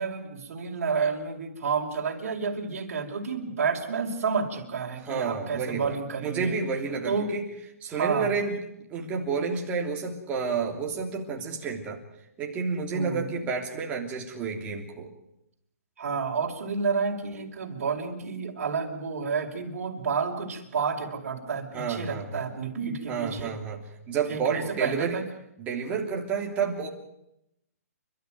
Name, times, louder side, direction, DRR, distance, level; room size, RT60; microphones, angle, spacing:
voice 1, 0.0-6.6 7.1-7.3 7.9-8.3 12.9-13.3 16.0-23.5 24.3-25.2, right 5 dB, 55° right, 0 dB, 5.3 m, -30 dB
voice 2, 5.1-7.5 7.8-8.5 8.9-12.0 12.4-15.1 21.7-22.5 23.1-23.8 24.1-25.2 25.6-26.9, right 5 dB, 15° right, 0 dB, 3.2 m, -30 dB
30.0 x 13.0 x 9.5 m, 0.82 s
hypercardioid pair, 165°, 9 cm